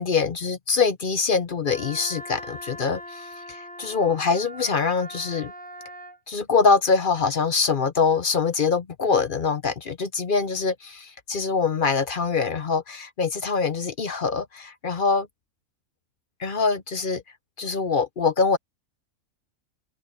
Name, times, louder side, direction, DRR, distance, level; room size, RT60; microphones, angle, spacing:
voice 1, 0.0-5.5 6.3-15.3 16.4-17.2 17.6-18.6, left 5 dB, 45° left, 0.8 m, -24 dB
Wind instrument woodwind instrument, 1.6-6.2, equal, 10° left, 0.5 m, -40 dB
omnidirectional pair, 1.5 m